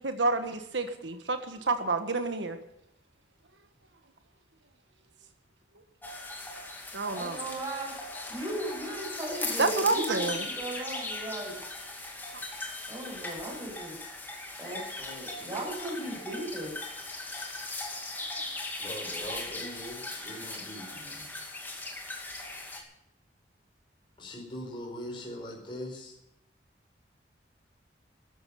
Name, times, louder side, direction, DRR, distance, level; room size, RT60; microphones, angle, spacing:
voice 1, 0.0-2.6 6.9-7.4 9.6-10.4 12.3-12.4, right 3 dB, 80° right, 7 dB, 1.5 m, -29 dB
sound 1, 6.0-22.8, left 2 dB, 10° left, 2.5 m, -39 dB
voice 2, 7.1-7.9 8.3-11.6 12.9-14.0 14.6-16.8, right 1 dB, 20° right, -5 dB, 7.0 m, -37 dB
voice 3, 18.8-21.2 24.2-26.1, equal, 30° left, -1 dB, 4.8 m, -41 dB
14.0 x 12.5 x 7.0 m, 0.81 s
head